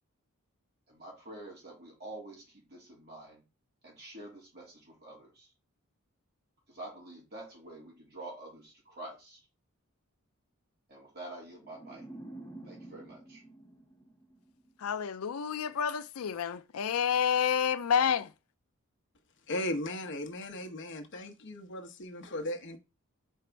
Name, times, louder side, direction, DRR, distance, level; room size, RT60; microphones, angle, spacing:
voice 1, 0.9-3.4 3.8-5.5 6.7-9.4 10.9-12.0 12.6-13.4, right 2 dB, 50° right, 3.3 m, -47 dB
sound 1, 11.6-14.7, right 2 dB, 10° left, 3.3 m, -49 dB
voice 2, 14.8-18.3, left 8 dB, 75° left, 0.5 m, -29 dB
voice 3, 19.5-22.8, left 1 dB, 55° left, 1.1 m, -37 dB
5.0 x 4.6 x 4.5 m
head